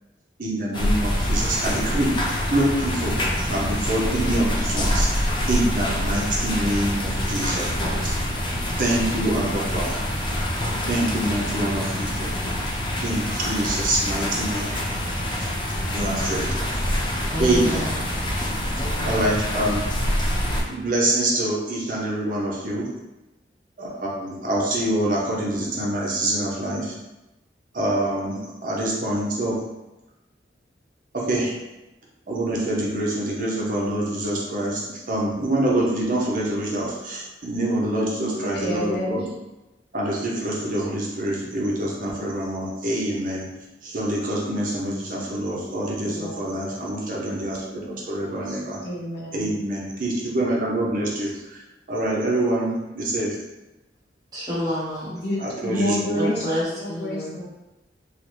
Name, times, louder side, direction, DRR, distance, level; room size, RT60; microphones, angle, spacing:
voice 1, 0.4-8.2 8.8-10.0 10.9-12.4 13.0-14.7 15.3-15.5 15.9-16.5 17.4-17.8 19.1-19.8 20.5-22.8 23.8-26.9 27.7-29.6 31.1-31.5 32.3-39.2 39.9-43.5 43.8-48.8 49.3-51.6 51.9-53.4 55.4-56.4, right 1 dB, 50° right, -4 dB, 0.6 m, -25 dB
sound 1, 0.7-20.6, equal, 25° left, 0.4 m, -26 dB
voice 2, 17.2-18.0 18.7-19.5 54.3-55.2 56.1-57.4, equal, 20° right, -9 dB, 1.1 m, -29 dB
voice 3, 38.4-39.1 46.0-46.4 48.8-49.5 55.2-56.4 56.7-57.5, left 1 dB, 60° left, -4 dB, 0.8 m, -28 dB
3.7 x 2.1 x 3.0 m, 1.0 s
head